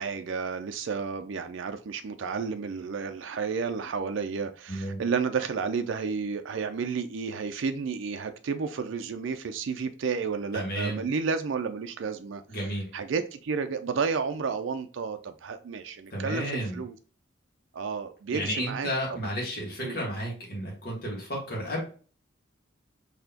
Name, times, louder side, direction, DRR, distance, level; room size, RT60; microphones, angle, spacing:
voice 1, 0.0-12.4 12.9-17.0 17.7-18.9 19.8-20.0, right 5 dB, 75° right, 8 dB, 0.4 m, -31 dB
voice 2, 4.7-5.0 10.5-11.0 12.5-12.9 16.1-16.8 18.3-21.8, equal, 50° left, -3 dB, 1.5 m, -32 dB
4.0 x 2.9 x 2.8 m, 0.39 s
head